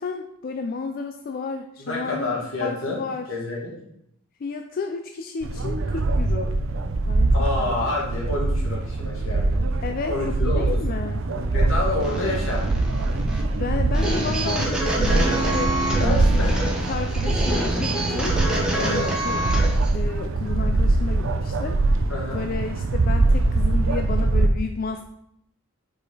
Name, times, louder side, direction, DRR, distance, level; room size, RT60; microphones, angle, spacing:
voice 1, 0.0-3.3 4.4-6.5 7.1-7.8 9.8-11.3 13.6-15.7 16.1-18.4 18.8-19.4 19.9-21.8 22.3-25.0, left 4 dB, 45° left, 5 dB, 0.4 m, -32 dB
voice 2, 1.8-3.0 3.3-3.7 7.3-9.6 10.1-10.6 11.3-12.6 15.4-15.5 16.0-16.7 18.8-19.1 22.1-22.4, left 2 dB, 85° left, -3 dB, 2.0 m, -28 dB
sound 1, 5.4-24.5, right 2 dB, 70° right, 0.5 m, -23 dB
sound 2, 12.0-19.9, right 1 dB, 5° right, 1.1 m, -27 dB
5.2 x 4.9 x 4.0 m, 0.73 s
head